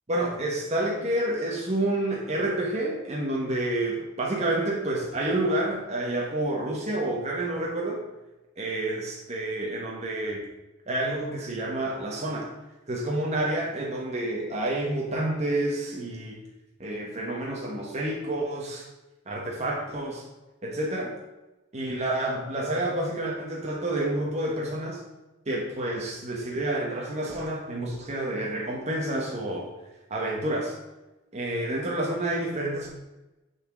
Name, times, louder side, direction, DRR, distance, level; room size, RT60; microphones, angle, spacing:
voice 1, 0.1-8.1 8.6-10.5 10.9-12.5 12.9-16.4 16.8-18.9 19.3-20.3 20.6-21.2 21.7-25.0 25.5-29.7 30.1-30.8 31.3-32.9, right 1 dB, 35° right, -2 dB, 1.2 m, -29 dB
7.1 x 4.4 x 6.0 m, 1.0 s
head